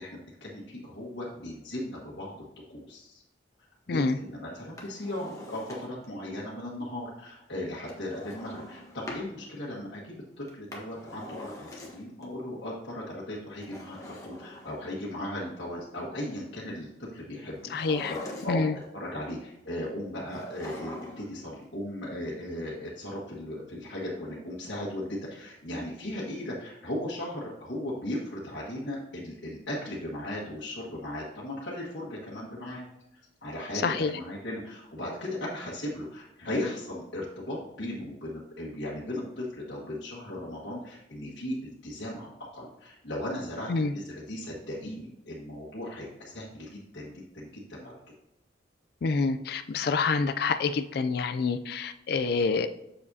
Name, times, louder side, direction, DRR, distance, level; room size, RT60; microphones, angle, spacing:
voice 1, 0.0-2.4 2.7-3.2 3.9-32.8 33.4-47.9, left 1 dB, 90° left, -7 dB, 1.6 m, -37 dB
Drawer open or close, 4.6-6.1 7.8-9.3 10.5-12.2 13.5-15.2 17.6-18.8 20.3-21.4 21.6-21.7, left 1 dB, 20° left, 1.3 m, -43 dB
voice 2, 17.7-18.1 18.5-18.7 33.8-34.1 43.7-43.9 49.0-52.7, left 4 dB, 60° left, 10 dB, 0.3 m, -27 dB
7.3 x 7.0 x 2.7 m, 0.86 s
head